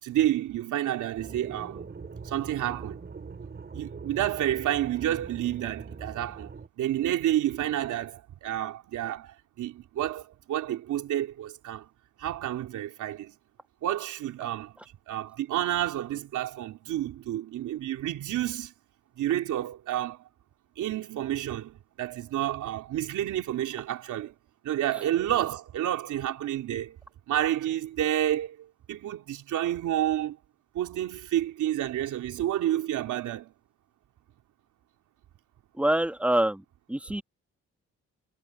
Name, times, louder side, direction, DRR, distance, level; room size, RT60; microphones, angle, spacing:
voice 1, 0.0-1.9 2.2-3.0 3.7-6.5 6.8-11.9 12.2-13.3 13.8-14.8 15.1-18.7 19.2-20.2 20.8-24.3 24.6-27.0 27.3-30.4 30.7-33.5, right 12 dB, 80° right, 3.2 m, -30 dB
sound 1, 1.2-6.7, right 5 dB, 35° right, 7.2 m, -42 dB
voice 2, 35.8-36.6 36.9-37.2, right 1 dB, 5° right, 1.8 m, -25 dB
cardioid pair, 90°, 30 cm